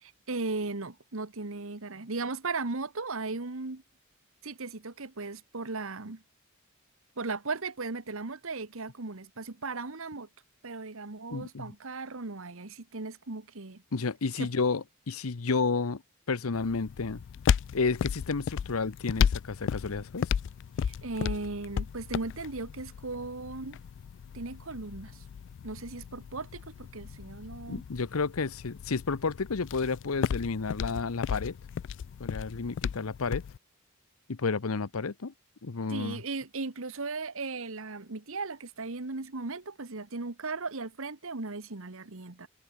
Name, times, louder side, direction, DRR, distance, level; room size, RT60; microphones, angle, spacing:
voice 1, 0.0-3.8 4.4-6.2 7.2-10.3 10.6-13.8 14.4-14.5 20.8-23.8 24.3-25.2 25.6-27.8 35.9-42.5, right 3 dB, 65° right, 1.4 m, -37 dB
voice 2, 11.3-11.7 13.9-16.0 16.3-17.2 17.7-20.3 27.7-31.6 32.2-33.4 34.3-35.3 35.6-36.2, left 4 dB, 75° left, 0.8 m, -31 dB
sound 1, 16.5-33.6, left 7 dB, 60° left, 0.3 m, -34 dB
head